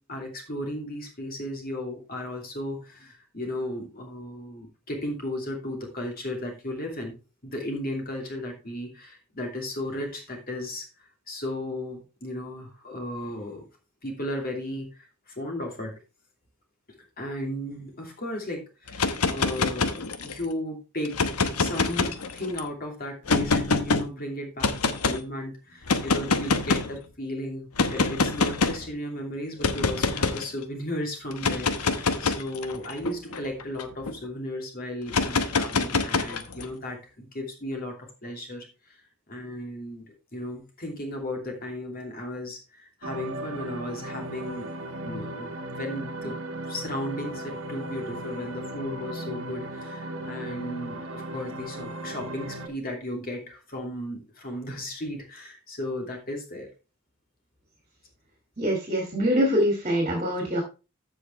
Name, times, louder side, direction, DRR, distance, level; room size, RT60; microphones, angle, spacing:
voice 1, 0.0-7.1 7.4-10.9 11.3-13.7 14.0-16.0 17.2-21.2 21.6-39.0 39.3-44.7 45.0-46.4 46.7-56.7, left 1 dB, 40° left, 1 dB, 2.7 m, -35 dB
sound 1, 18.9-20.4 21.1-22.6 23.3-24.0 24.6-25.2 25.9-27.0 27.8-28.9 29.6-30.5 31.3-34.1 35.1-36.7, left 4 dB, 85° left, 1.0 m, -25 dB
sound 2, 43.0-52.7, right 1 dB, 65° right, 1.2 m, -36 dB
voice 2, 58.6-60.6, equal, 30° right, 1 dB, 2.5 m, -24 dB
14.5 x 5.1 x 3.3 m, 0.30 s
head